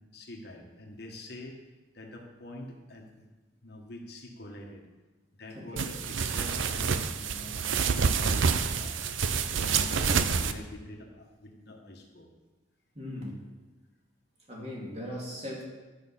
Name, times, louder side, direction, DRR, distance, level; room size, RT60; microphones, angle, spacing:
voice 1, 0.1-1.6 1.9-3.3 3.6-4.8 5.3-9.0 9.6-12.3, left 1 dB, 55° left, 1 dB, 1.4 m, -45 dB
voice 2, 5.5-5.9 9.9-10.2 12.9-13.4 14.5-15.6, left 1 dB, 35° right, -3 dB, 2.5 m, -39 dB
sound 1, 5.8-10.5, right 5 dB, 80° right, 0.6 m, -27 dB
11.5 x 6.3 x 5.7 m, 1.2 s
head